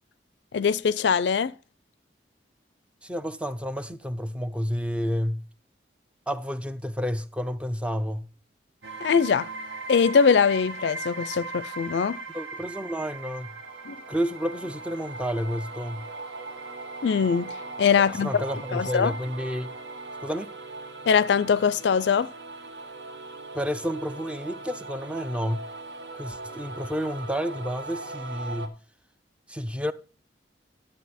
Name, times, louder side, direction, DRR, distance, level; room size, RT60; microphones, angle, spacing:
voice 1, 0.5-1.5 9.0-9.5 9.9-12.2 13.9-14.0 17.0-17.5 17.8-18.4 18.7-19.1 21.1-22.3, left 6 dB, 75° left, 0.4 m, -22 dB
voice 2, 3.0-5.5 6.3-8.3 12.3-13.6 14.1-16.1 18.1-19.7 20.2-20.5 23.5-25.6 26.1-28.7 29.5-29.9, equal, 5° right, 0.5 m, -30 dB
sound 1, 8.8-28.7, right 3 dB, 75° right, 1.5 m, -39 dB
11.5 x 7.6 x 4.2 m
head